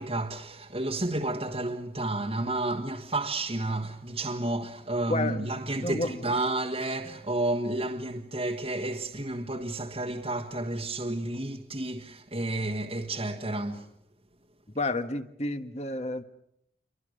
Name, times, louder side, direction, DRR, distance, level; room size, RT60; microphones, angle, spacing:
voice 1, 0.0-13.9, right 2 dB, 30° right, 1.5 m, -31 dB
voice 2, 5.1-5.5 5.8-6.1 14.7-16.2, left 2 dB, 35° left, 1.5 m, -30 dB
29.0 x 24.0 x 6.5 m
head